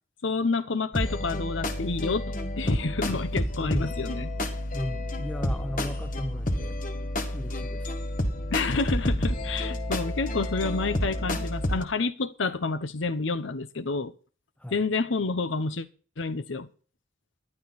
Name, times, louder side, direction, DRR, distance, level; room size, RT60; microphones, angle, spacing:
voice 1, 0.2-4.3 8.5-14.1 14.7-15.9 16.2-16.7, left 3 dB, 75° left, 0.9 m, -29 dB
sound 1, 0.9-11.8, left 1 dB, 40° left, 1.6 m, -30 dB
voice 2, 3.6-4.0 4.7-6.8 7.3-7.9 14.6-14.8, equal, 5° left, 0.9 m, -36 dB
14.0 x 11.0 x 4.1 m
head